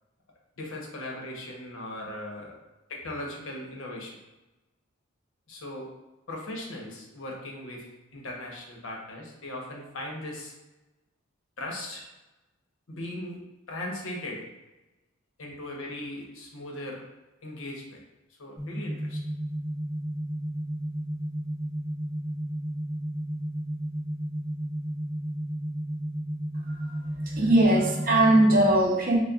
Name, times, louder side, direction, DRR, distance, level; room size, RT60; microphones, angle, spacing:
voice 1, 0.6-2.5 2.9-4.2 5.5-5.9 6.3-10.5 11.6-12.1 12.9-13.4 13.7-14.4 15.4-17.0 17.4-18.0 18.4-19.2, left 1 dB, 75° left, -1 dB, 0.9 m, -38 dB
sound 1, 18.6-28.6, right 1 dB, 15° left, 1.2 m, -33 dB
voice 2, 27.2-29.2, right 1 dB, 45° right, -1 dB, 0.7 m, -20 dB
6.6 x 2.2 x 2.3 m, 1.1 s
head